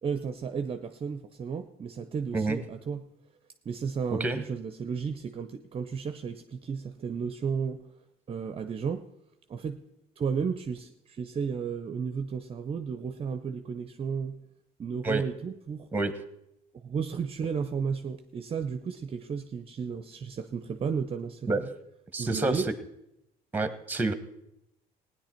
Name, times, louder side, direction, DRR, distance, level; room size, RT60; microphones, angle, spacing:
voice 1, 0.0-3.0 3.7-7.8 8.3-9.0 9.5-9.8 10.2-14.4 14.8-15.9 16.8-21.5 22.2-22.7, right 6 dB, 35° right, 9 dB, 0.6 m, -33 dB
voice 2, 4.1-4.4 15.0-15.2 15.9-16.1 21.5-21.6 22.1-22.6 23.5-24.1, right 2 dB, 10° right, 11 dB, 1.1 m, -28 dB
16.5 x 9.8 x 4.4 m, 0.83 s
cardioid pair, 110°, 17 cm